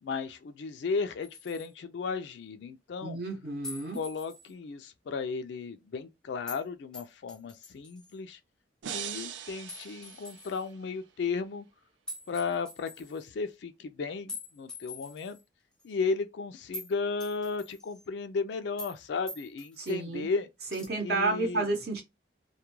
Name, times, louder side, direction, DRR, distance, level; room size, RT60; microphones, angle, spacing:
voice 1, 0.0-3.2 3.9-8.4 8.9-11.7 12.3-15.4 15.8-20.5 21.0-21.7, left 4 dB, 65° left, 0.3 m, -34 dB
sound 1, 1.2-1.7 3.6-4.5 6.5-6.6 6.9-8.2 9.7-10.7 12.1-13.3 14.3-15.4 15.8-15.9 16.7-16.9 17.2-18.0 18.8-19.0 19.3-20.0 20.7-20.9, left 2 dB, 5° left, 0.5 m, -45 dB
voice 2, 3.0-4.0 19.8-20.3 20.7-22.0, right 3 dB, 55° right, 0.7 m, -31 dB
sound 2, 8.8-11.0, right 9 dB, 80° right, 0.4 m, -41 dB
2.3 x 2.1 x 3.0 m
head